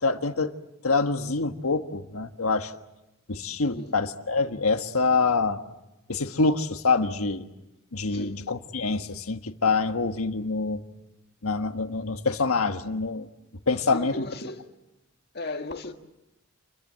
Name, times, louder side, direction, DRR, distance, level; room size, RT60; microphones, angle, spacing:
voice 1, 0.0-0.5 0.8-2.7 3.3-5.6 6.1-7.4 7.9-10.8 11.4-13.3 13.7-14.2, left 4 dB, 90° left, 1.5 m, -26 dB
voice 2, 13.9-14.8 15.3-15.9, left 2 dB, 50° left, 1.7 m, -36 dB
29.0 x 22.5 x 7.6 m
head